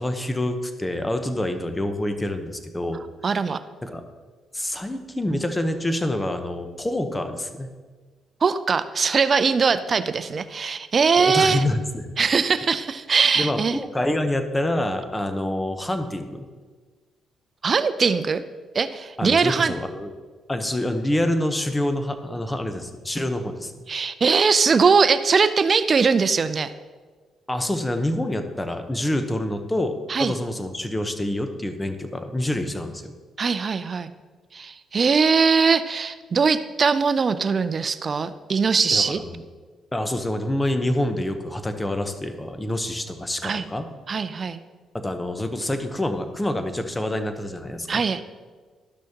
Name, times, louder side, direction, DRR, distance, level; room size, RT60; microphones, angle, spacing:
voice 1, 0.0-3.0 3.8-4.0 4.5-7.7 11.2-12.1 13.4-16.4 19.2-20.1 20.5-23.7 27.5-33.1 38.9-39.4 39.9-43.9 44.9-48.0, left 1 dB, 15° left, 7 dB, 0.9 m, -27 dB
voice 2, 3.2-3.6 8.4-11.6 12.2-13.8 17.6-18.4 18.7-19.7 23.9-26.7 30.1-30.3 33.4-34.1 34.5-39.2 43.4-43.6 44.1-44.6 47.9-48.2, right 5 dB, 45° right, 12 dB, 0.5 m, -21 dB
12.0 x 6.2 x 2.9 m, 1.4 s
cardioid pair, 70°, 0 cm